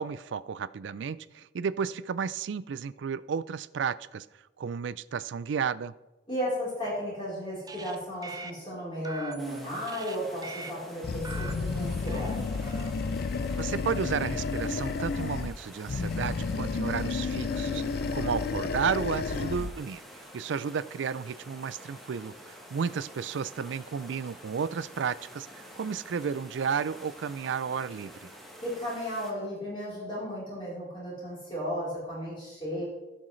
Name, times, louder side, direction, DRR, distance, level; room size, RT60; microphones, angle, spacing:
voice 1, 0.0-4.3 4.6-5.9 13.6-20.0 20.3-28.3, right 6 dB, 70° right, 17 dB, 0.4 m, -32 dB
voice 2, 6.3-12.6 28.6-32.8, equal, 25° left, -8 dB, 3.8 m, -34 dB
sound 1, 7.6-8.0 8.2-8.5 9.0-10.2 10.4-10.7 11.2-12.4 12.6-12.9, right 4 dB, 20° right, 0.5 m, -43 dB
sound 2, 9.4-29.3, equal, ahead, 1.2 m, -48 dB
Animal, 11.0-15.6 15.9-19.8, left 4 dB, 55° left, 0.4 m, -31 dB
16.0 x 6.3 x 3.2 m, 1.0 s
head